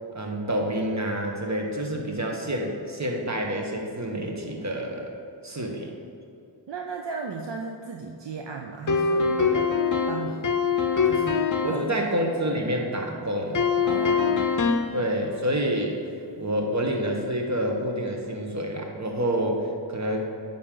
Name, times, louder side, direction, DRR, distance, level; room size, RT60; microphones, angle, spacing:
voice 1, 0.1-5.1 5.4-5.9 11.6-13.6 14.9-16.0 16.4-20.2, equal, 35° right, 1 dB, 1.2 m, -28 dB
voice 2, 6.7-9.8 10.1-10.5 11.0-11.9 13.8-14.5, right 4 dB, 65° right, 2 dB, 0.6 m, -35 dB
sound 1, 8.9-11.9 13.5-15.0, left 5 dB, 45° left, 0.6 m, -23 dB
9.4 x 5.5 x 3.8 m, 2.6 s
wide cardioid pair, 70°, 46 cm